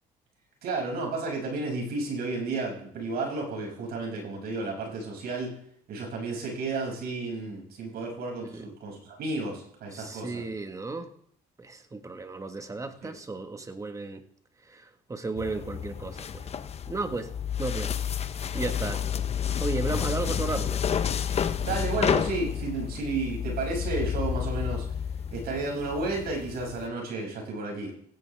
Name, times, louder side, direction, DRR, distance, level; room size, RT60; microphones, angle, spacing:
voice 1, 0.6-5.6 5.9-10.4 13.0-13.2 21.6-24.9 25.3-27.9, right 3 dB, 70° right, 0 dB, 6.4 m, -32 dB
voice 2, 9.9-11.1 11.6-14.2 14.6-16.5 16.9-17.3 17.6-17.9 18.5-19.0 19.6-20.8, right 3 dB, 20° right, 7 dB, 1.5 m, -34 dB
sound 1, 15.4-26.9, left 8 dB, 40° left, 0.9 m, -30 dB
16.0 x 16.0 x 3.5 m, 0.65 s
cardioid pair, 110°, 17 cm